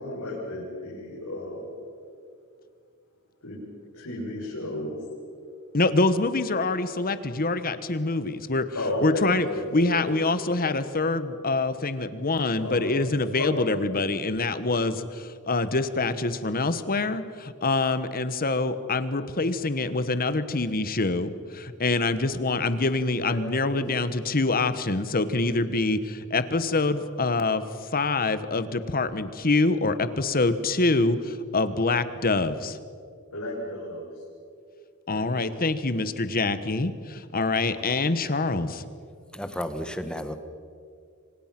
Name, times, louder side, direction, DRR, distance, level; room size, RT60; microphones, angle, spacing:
voice 1, 0.0-1.7 3.4-3.6 3.9-5.0 8.7-10.1 12.6-12.9 13.3-13.9 23.2-23.4 23.7-23.8 33.3-34.1 35.1-35.4, left 1 dB, 85° left, -8 dB, 7.1 m, -33 dB
voice 2, 5.7-8.7 9.0-27.6 27.9-32.8 35.1-38.8, left 3 dB, 40° left, 12 dB, 1.3 m, -25 dB
voice 3, 39.3-40.4, equal, 5° left, 8 dB, 1.5 m, -32 dB
26.5 x 26.0 x 6.1 m, 2.3 s
head